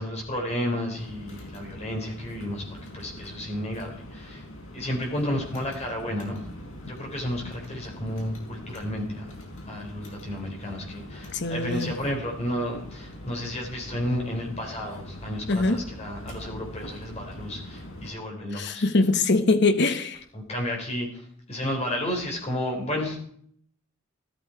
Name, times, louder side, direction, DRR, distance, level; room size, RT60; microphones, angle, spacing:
voice 1, 0.0-2.6 2.9-4.5 4.7-6.5 6.8-9.3 9.7-18.8 20.3-23.2, left 1 dB, 35° left, 4.1 m, -32 dB
sound 1, 0.9-18.1, left 1 dB, 85° left, 5.2 m, -42 dB
voice 2, 11.3-11.9 15.5-15.8 18.5-20.2, left 3 dB, 55° left, 1.1 m, -23 dB
14.0 x 14.0 x 4.6 m
head